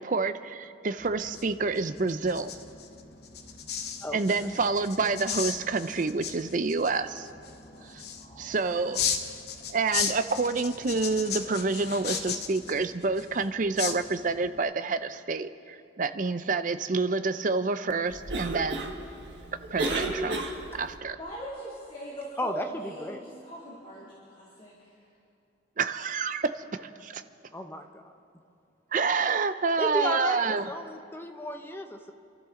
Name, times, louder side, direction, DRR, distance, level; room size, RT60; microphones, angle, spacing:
voice 1, 0.0-2.6 4.1-7.3 7.8-8.0 8.4-9.0 9.7-18.9 19.7-20.4 20.7-21.2 25.8-27.2 28.9-30.7, right 4 dB, 40° right, 11 dB, 0.5 m, -28 dB
sound 1, 1.0-14.6, left 7 dB, 55° left, 0.9 m, -36 dB
voice 2, 4.0-4.5 22.4-23.2 27.5-28.1 29.8-32.1, equal, 10° left, 5 dB, 0.7 m, -34 dB
voice 3, 8.2-8.5 21.2-24.7, right 1 dB, 30° left, -6 dB, 2.5 m, -41 dB
Cough, 18.1-21.0, right 2 dB, 60° right, 1.6 m, -33 dB
28.0 x 13.0 x 3.7 m, 2.6 s
head